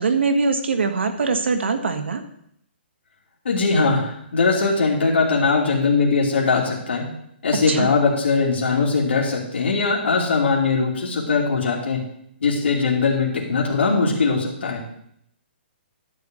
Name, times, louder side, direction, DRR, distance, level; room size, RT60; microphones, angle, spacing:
voice 1, 0.0-2.2 7.7-7.9, right 4 dB, 85° right, 6 dB, 1.8 m, -22 dB
voice 2, 3.4-7.1 7.4-12.0 12.4-14.8, left 4 dB, 75° left, -2 dB, 2.7 m, -20 dB
11.5 x 4.9 x 7.8 m, 0.72 s
hypercardioid pair, 170°, 6 cm